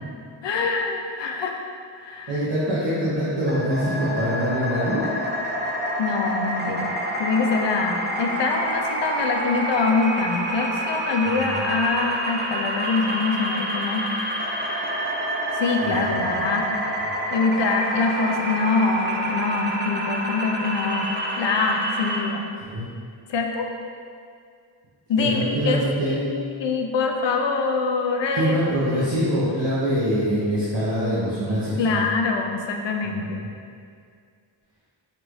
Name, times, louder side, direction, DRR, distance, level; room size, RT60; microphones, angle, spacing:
voice 1, 0.4-1.7 2.0-2.3 6.0-14.1 15.5-16.7 17.3-21.1 21.4-22.5 23.3-23.7 25.1-25.8 26.1-28.6 28.9-29.0 31.8-33.4, left 4 dB, 65° left, 2 dB, 0.6 m, -24 dB
voice 2, 2.3-5.0 11.3-11.6 15.8-16.5 22.6-22.9 25.2-26.2 28.3-32.0 33.0-33.3, equal, 60° right, -10 dB, 1.0 m, -24 dB
sound 1, 3.5-22.2, right 1 dB, 25° right, 0.4 m, -28 dB
5.4 x 2.5 x 3.1 m, 2.2 s
wide cardioid pair, 85°, 47 cm